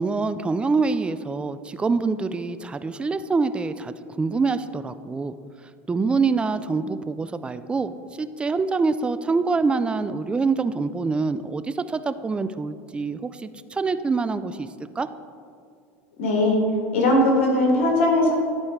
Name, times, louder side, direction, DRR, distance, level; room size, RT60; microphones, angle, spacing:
voice 1, 0.0-5.3 5.9-14.7 15.0-15.1, right 4 dB, 15° right, 12 dB, 0.3 m, -25 dB
voice 2, 16.2-16.6 16.9-18.3, left 1 dB, 85° left, 0 dB, 1.7 m, -19 dB
11.5 x 4.4 x 3.6 m, 2.2 s
supercardioid pair, 105°, 7 cm